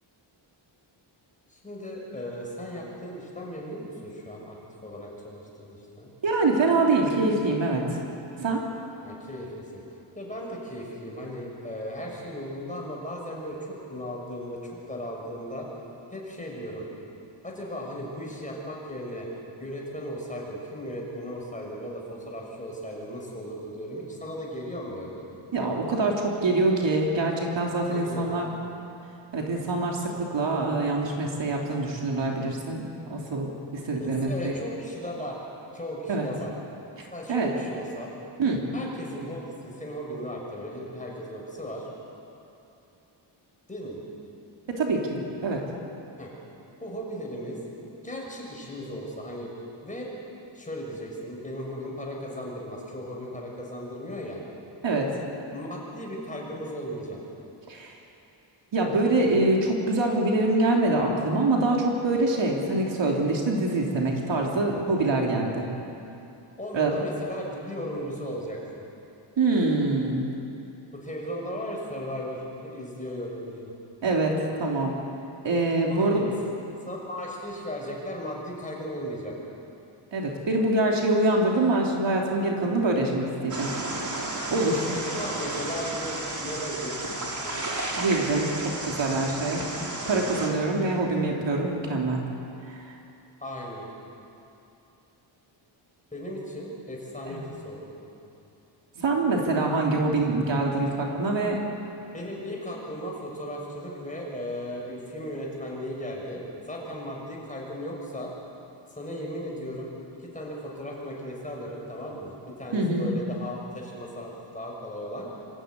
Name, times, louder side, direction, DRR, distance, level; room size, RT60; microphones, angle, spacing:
voice 1, 1.5-6.1 9.0-9.8 10.1-15.7 16.1-16.8 17.4-19.3 19.6-25.3 27.9-28.5 33.9-35.4 35.7-36.5 37.1-38.1 38.7-41.9 43.7-44.0 46.2-46.3 46.8-47.6 48.0-49.5 49.8-50.1 50.5-54.4 55.5-57.2 66.6-68.8 70.9-73.7 75.8-76.3 76.9-79.3 84.7-87.6 89.7-90.5 93.4-93.9 96.1-97.9 102.1-108.3 108.9-109.9 110.2-115.3, equal, 15° left, -2 dB, 6.2 m, -36 dB
voice 2, 6.2-7.9 8.4-8.6 25.5-28.5 29.3-34.5 36.1-36.3 37.0-37.5 38.4-38.6 44.8-45.6 54.8-55.1 57.7-57.9 58.7-65.7 66.7-66.9 69.4-70.3 74.0-74.3 74.6-74.9 75.4-76.2 80.1-83.7 84.5-84.9 88.0-89.6 90.1-92.2 92.7-92.9 97.2-97.4 99.0-101.6 112.7-113.1, right 2 dB, 65° right, -1 dB, 3.4 m, -25 dB
sound 1, 83.5-90.5, right 2 dB, 35° right, 3.7 m, -33 dB
26.5 x 14.5 x 9.5 m, 2.8 s
wide cardioid pair, 115°, 48 cm